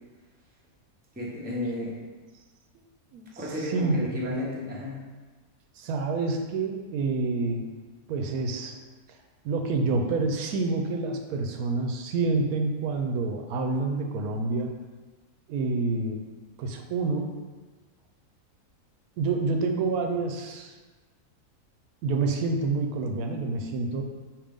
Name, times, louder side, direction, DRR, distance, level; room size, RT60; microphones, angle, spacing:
voice 1, 1.1-1.9 3.4-5.0, left 1 dB, 10° right, -5 dB, 0.6 m, -32 dB
voice 2, 3.6-4.0 4.2-4.4 5.8-7.7 8.1-8.8 9.4-14.7 15.5-16.2 16.6-17.3 19.2-20.7 22.0-24.0, right 3 dB, 85° right, 3 dB, 1.1 m, -28 dB
5.1 x 2.9 x 3.5 m, 1.3 s
omnidirectional pair, 1.5 m